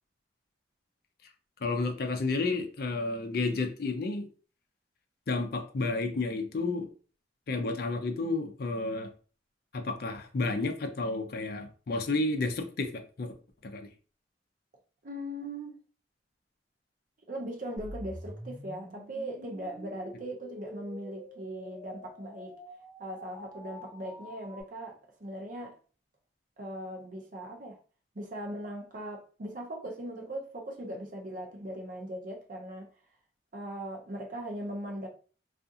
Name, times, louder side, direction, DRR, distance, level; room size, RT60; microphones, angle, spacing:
voice 1, 1.6-4.3 5.3-6.9 7.5-9.1 9.7-13.3 13.6-13.9, left 3 dB, 55° left, 0.5 m, -31 dB
voice 2, 15.0-15.8 17.3-22.6 23.0-25.8 26.6-27.8 28.1-32.9 33.5-35.1, right 1 dB, 45° right, 0.6 m, -39 dB
sound 1, 17.8-24.6, equal, ahead, 0.9 m, -47 dB
2.4 x 2.4 x 2.7 m
head